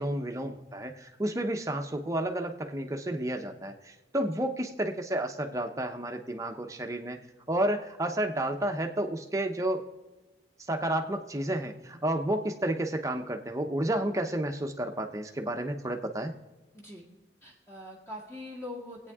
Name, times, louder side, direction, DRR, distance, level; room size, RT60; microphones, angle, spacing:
voice 1, 0.0-7.2 7.5-9.8 10.7-16.3, right 1 dB, 20° right, 4 dB, 0.9 m, -31 dB
voice 2, 16.7-17.1 17.4-19.1, left 1 dB, 15° left, -3 dB, 2.0 m, -43 dB
23.5 x 8.8 x 3.7 m, 1.1 s
head